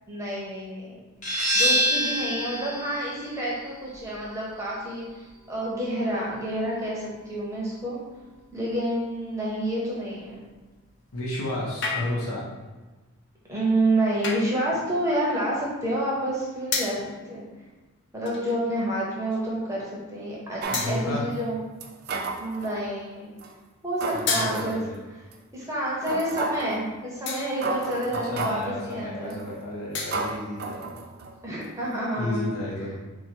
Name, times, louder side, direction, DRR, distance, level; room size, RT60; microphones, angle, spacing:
voice 1, 0.1-1.0 1.5-8.0 8.5-10.4 13.5-17.4 18.1-21.6 22.4-23.3 23.8-24.8 25.5-29.3 31.4-32.5, right 1 dB, 15° right, -5 dB, 0.8 m, -29 dB
sound 1, 1.2-6.6, equal, 35° left, 0.9 m, -28 dB
voice 2, 11.1-12.5 20.7-21.2 24.1-25.0 28.1-31.0 32.2-33.0, left 1 dB, 80° left, -5 dB, 0.8 m, -32 dB
sound 2, 11.8-12.4 14.2-14.6 16.7-17.1 18.2-18.7 19.3-19.5 20.7-21.3 24.3-25.1 27.3-27.7 29.9-30.5, left 4 dB, 50° left, 0.5 m, -31 dB
sound 3, 20.6-20.9 21.8-22.8 23.4-23.5 24.0-24.8 25.3-25.4 26.1-26.7 27.3-27.4 27.6-28.7 29.3-29.6 30.1-31.3 31.6-31.7, right 3 dB, 45° right, 0.3 m, -32 dB
4.4 x 2.2 x 4.4 m, 1.2 s
head